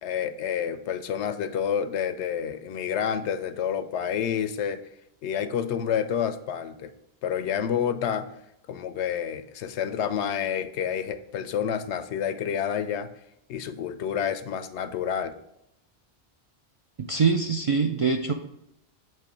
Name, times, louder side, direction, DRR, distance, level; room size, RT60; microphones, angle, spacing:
voice 1, 0.0-4.8 5.2-6.9 7.2-8.3 8.7-13.1 13.5-15.4, left 8 dB, 85° left, 11 dB, 0.9 m, -29 dB
voice 2, 17.0-18.3, right 5 dB, 55° right, 3 dB, 0.3 m, -24 dB
7.6 x 3.1 x 5.0 m, 0.80 s
omnidirectional pair, 1.1 m